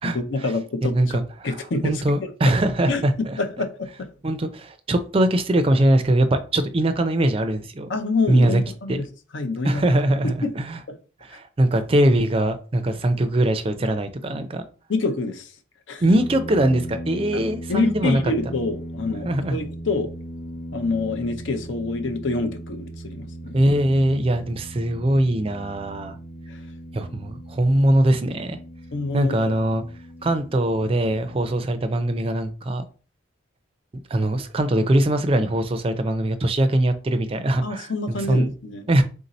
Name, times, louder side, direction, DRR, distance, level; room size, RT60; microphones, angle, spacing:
voice 1, 0.0-2.0 2.4-2.5 2.9-3.0 3.4-4.1 7.9-9.0 9.3-9.8 10.4-10.5 10.9-11.0 14.9-15.5 15.9-16.0 17.3-17.4 17.7-20.1 20.7-23.6 26.5-26.6 28.9-29.5 37.6-38.9, left 3 dB, 70° left, 0.6 m, -27 dB
voice 2, 0.9-1.6 1.8-3.3 4.2-7.9 8.3-8.6 8.9-9.0 9.6-10.8 11.2-14.6 16.0-18.2 19.2-19.6 23.5-26.2 26.9-28.6 29.1-29.8 30.2-32.9 34.1-38.5 38.9-39.0, right 1 dB, 30° right, 0.4 m, -21 dB
sound 1, 16.1-31.7, right 1 dB, 35° left, 0.7 m, -37 dB
3.7 x 2.7 x 4.1 m
head